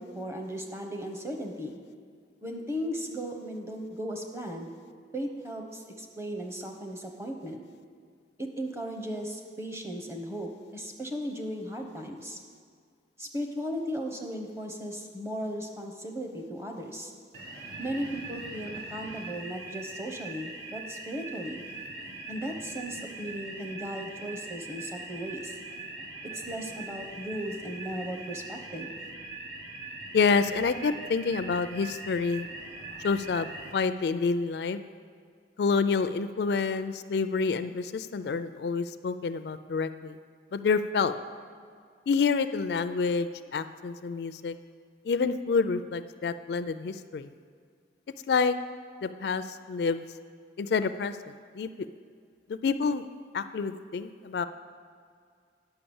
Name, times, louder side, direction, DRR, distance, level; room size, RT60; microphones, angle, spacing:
voice 1, 0.0-1.8 2.4-4.7 5.1-7.6 8.4-12.4 13.2-17.1 17.8-21.6 22.3-25.6 26.3-28.9, equal, 15° right, 3 dB, 0.9 m, -36 dB
sound 1, 17.3-33.7, right 2 dB, 65° right, 1.3 m, -41 dB
voice 2, 30.1-32.5 33.0-33.5 33.7-34.8 35.6-40.1 40.5-41.1 42.1-44.5 45.1-47.3 48.3-48.5 49.0-49.4 49.7-50.0 50.6-51.1 51.6-51.7 52.6-53.0 53.3-54.4, left 5 dB, 65° left, 12 dB, 0.3 m, -28 dB
9.9 x 5.7 x 7.0 m, 2.1 s
head